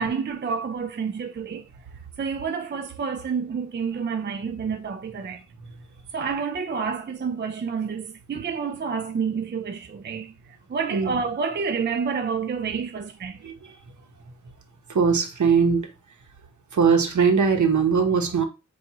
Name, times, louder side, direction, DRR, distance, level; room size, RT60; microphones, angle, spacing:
voice 1, 0.0-1.7 2.2-5.4 6.1-10.3 10.7-13.4, right 5 dB, 35° right, 0.5 m, -29 dB
voice 2, 14.9-15.9 16.7-18.4, right 6 dB, 60° right, 1.0 m, -20 dB
5.9 x 2.6 x 2.8 m
cardioid pair, 60°, 33 cm